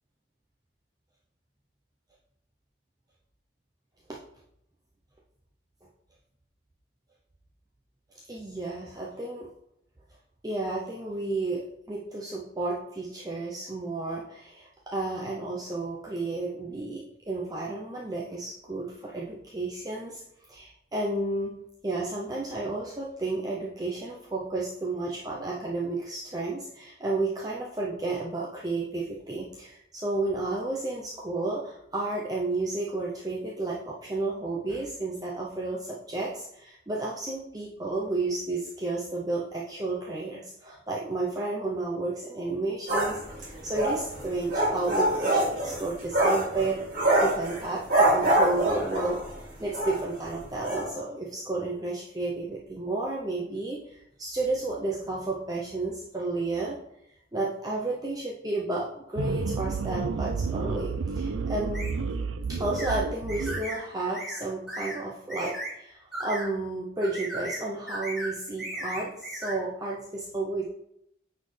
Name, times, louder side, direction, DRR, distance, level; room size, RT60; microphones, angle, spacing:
voice 1, 8.3-9.5 10.4-20.2 20.5-21.6 21.8-49.2 49.6-56.8 57.3-61.8 62.5-70.6, right 2 dB, 20° right, -4 dB, 0.6 m, -32 dB
sound 1, 42.9-49.3 49.7-50.0 50.2-50.3 50.6-50.9, right 1 dB, 45° right, 2.4 m, -25 dB
sound 2, 59.2-63.6, right 4 dB, 85° right, 0.4 m, -30 dB
sound 3, 61.7-61.9 62.8-63.0 63.3-63.8 64.1-64.4 64.7-65.0 65.3-65.7 66.1-66.5 67.0-67.6 67.9-68.3 68.6-69.5, right 1 dB, ahead, 2.1 m, -36 dB
9.2 x 4.1 x 3.3 m, 0.77 s
head